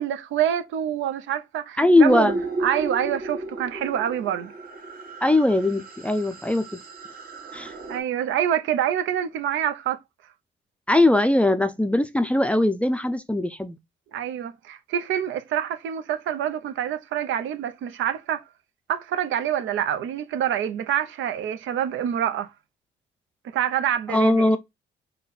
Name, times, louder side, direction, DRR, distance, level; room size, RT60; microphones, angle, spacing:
voice 1, 0.0-2.3 2.6-4.5 7.9-10.0 14.1-18.4 18.9-22.5 23.5-24.5, right 10 dB, 75° right, 0.6 m, -26 dB
voice 2, 1.8-2.4 5.2-6.6 7.5-7.7 10.9-13.8 24.1-24.6, left 2 dB, 5° left, 0.4 m, -20 dB
sound 1, 2.1-8.0, right 3 dB, 45° right, 1.2 m, -34 dB
4.1 x 2.2 x 3.9 m
cardioid pair, 90°, 20 cm